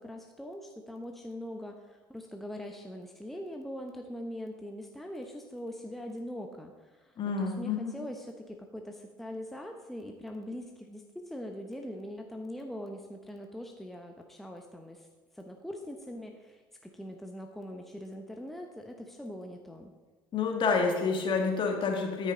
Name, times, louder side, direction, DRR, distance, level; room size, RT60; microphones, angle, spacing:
voice 1, 0.0-15.1 15.3-19.9, equal, ahead, 3 dB, 0.9 m, -42 dB
voice 2, 7.2-8.0 20.3-22.3, left 4 dB, 40° left, 2 dB, 2.0 m, -28 dB
13.0 x 6.3 x 3.9 m, 1.4 s
hypercardioid pair, 75°, 12 cm